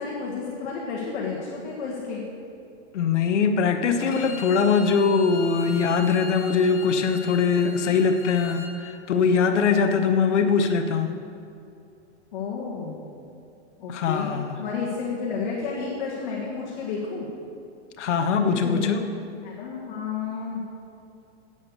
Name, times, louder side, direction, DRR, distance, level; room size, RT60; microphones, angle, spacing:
voice 1, 0.0-2.2 12.3-13.0 13.8-14.3 14.6-17.3 18.4-19.1 19.4-20.6, left 5 dB, 45° left, -5 dB, 1.7 m, -31 dB
voice 2, 2.9-11.1 13.9-14.6 18.0-19.0, left 5 dB, 85° left, 7 dB, 1.0 m, -22 dB
Bowed string instrument, 4.0-8.7, left 4 dB, 10° left, 0.5 m, -40 dB
8.7 x 8.0 x 6.8 m, 2.7 s
hypercardioid pair, 175°, 35 cm